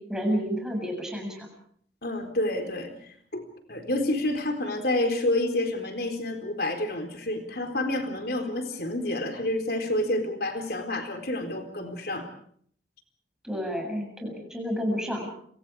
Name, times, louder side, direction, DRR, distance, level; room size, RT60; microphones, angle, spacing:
voice 1, 0.1-1.5 13.4-15.3, equal, 5° right, 1 dB, 7.5 m, -30 dB
voice 2, 2.0-2.9 3.3-12.3, left 1 dB, 55° left, 5 dB, 4.2 m, -29 dB
30.0 x 25.0 x 4.9 m, 0.62 s
head